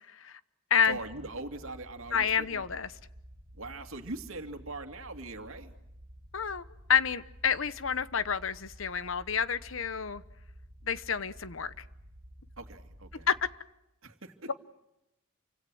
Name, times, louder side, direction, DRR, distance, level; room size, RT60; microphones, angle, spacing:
voice 1, 0.1-0.4 0.7-1.0 2.1-2.9 6.3-6.6 6.9-10.2 10.9-11.7 13.3-13.4, left 7 dB, 70° left, 15 dB, 1.0 m, -29 dB
sound 1, 0.8-13.5, equal, 45° right, 1.7 m, -52 dB
voice 2, 0.8-2.6 3.5-5.7 12.6-13.3 14.0-14.5, right 2 dB, 75° right, 6 dB, 2.5 m, -41 dB
29.0 x 25.5 x 6.3 m, 0.89 s
head